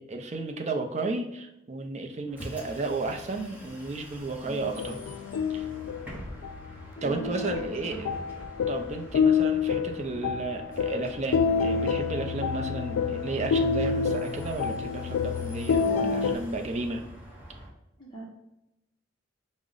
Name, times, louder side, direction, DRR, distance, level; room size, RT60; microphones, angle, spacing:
voice 1, 0.0-5.0 5.5-5.7 6.1-6.3 7.0-8.1 8.7-17.0, right 3 dB, 35° right, 3 dB, 0.4 m, -33 dB
Bus, 2.3-17.7, equal, 10° right, 0.8 m, -45 dB
voice 2, 4.4-4.9 6.1-6.3 7.0-8.1 18.0-18.3, right 2 dB, 25° left, -5 dB, 0.7 m, -42 dB
sound 1, 4.6-16.4, left 6 dB, 90° left, 0.3 m, -28 dB
4.7 x 2.1 x 3.8 m, 0.89 s
head